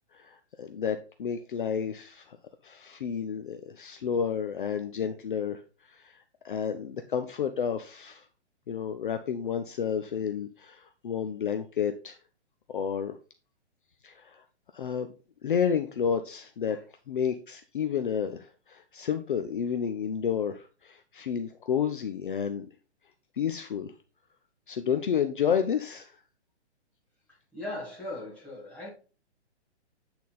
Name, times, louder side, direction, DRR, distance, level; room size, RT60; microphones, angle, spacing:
voice 1, 0.1-2.4 2.6-5.6 5.9-6.2 6.4-8.2 8.7-12.2 12.7-13.2 14.0-14.4 14.7-15.1 15.4-16.8 17.1-22.7 23.4-23.9 24.7-26.2, left 7 dB, 50° left, 0.6 m, -30 dB
voice 2, 27.5-28.9, left 1 dB, 5° left, 1.8 m, -38 dB
8.5 x 4.1 x 4.1 m
hypercardioid pair, 170°, 34 cm